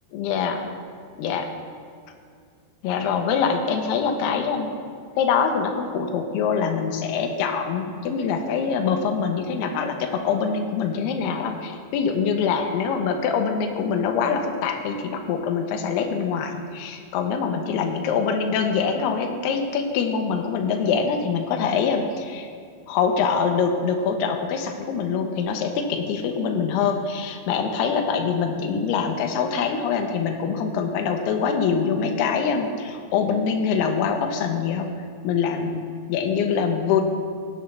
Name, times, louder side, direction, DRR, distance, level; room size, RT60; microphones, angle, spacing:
voice 1, 0.1-0.6 1.2-1.5 2.8-4.7 5.2-22.5 22.9-34.9 35.2-37.0, left 6 dB, 75° left, 4 dB, 2.6 m, -24 dB
17.0 x 8.1 x 3.4 m, 2.2 s
omnidirectional pair, 5.3 m